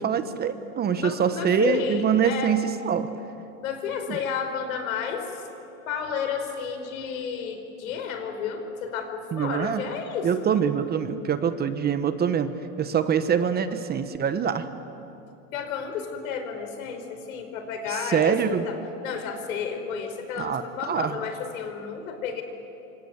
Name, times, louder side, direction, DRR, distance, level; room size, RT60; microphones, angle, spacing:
voice 1, 0.0-3.1 4.1-4.2 9.3-9.8 10.2-14.7 17.9-18.6 20.4-21.1, right 8 dB, 25° right, 10 dB, 1.1 m, -25 dB
voice 2, 1.0-2.6 3.6-5.5 5.9-10.5 15.5-22.4, left 6 dB, 75° left, 6 dB, 4.9 m, -31 dB
27.5 x 25.5 x 8.1 m, 2.8 s
supercardioid pair, 130°, 41 cm